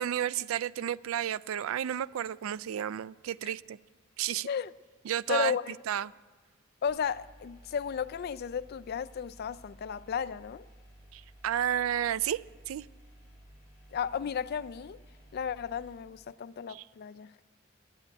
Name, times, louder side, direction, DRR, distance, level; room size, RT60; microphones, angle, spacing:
voice 1, 0.0-3.8 4.2-4.5 5.1-5.6 5.9-6.1 11.1-12.4 12.7-12.9 16.7-16.8, right 10 dB, 85° right, 0.3 m, -31 dB
voice 2, 5.3-5.7 6.8-10.7 13.9-15.0 15.3-17.3, left 7 dB, 50° left, 0.3 m, -34 dB
sound 1, 6.8-15.9, right 1 dB, 15° right, 5.2 m, -55 dB
11.5 x 9.4 x 9.1 m
head